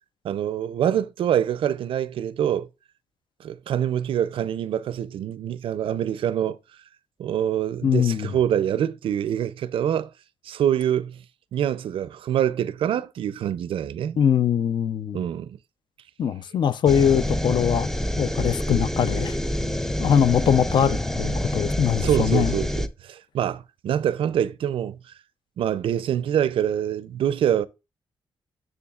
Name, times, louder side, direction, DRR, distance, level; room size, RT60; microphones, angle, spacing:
voice 1, 0.2-2.7 3.4-6.6 7.2-10.1 10.4-11.2 11.5-14.2 15.1-15.6 22.0-25.0 25.6-27.7, right 10 dB, 85° right, 0.4 m, -25 dB
voice 2, 7.8-8.3 14.2-15.2 16.2-17.9 18.2-19.4 20.0-22.6, left 8 dB, 60° left, 0.5 m, -22 dB
sound 1, 16.9-22.9, left 1 dB, 5° left, 0.4 m, -27 dB
7.1 x 6.9 x 2.4 m
wide cardioid pair, 145°, 9 cm